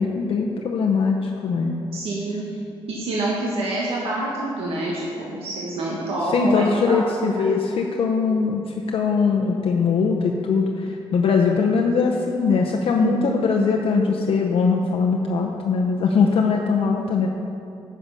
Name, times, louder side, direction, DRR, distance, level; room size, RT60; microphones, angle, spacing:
voice 1, 0.0-1.8 6.2-17.3, left 5 dB, 75° left, 1 dB, 0.7 m, -21 dB
voice 2, 1.9-2.5 2.9-7.4 13.0-13.4, right 2 dB, 85° right, -5 dB, 1.5 m, -27 dB
9.8 x 6.6 x 5.5 m, 2.6 s
cardioid pair, 125°, 10 cm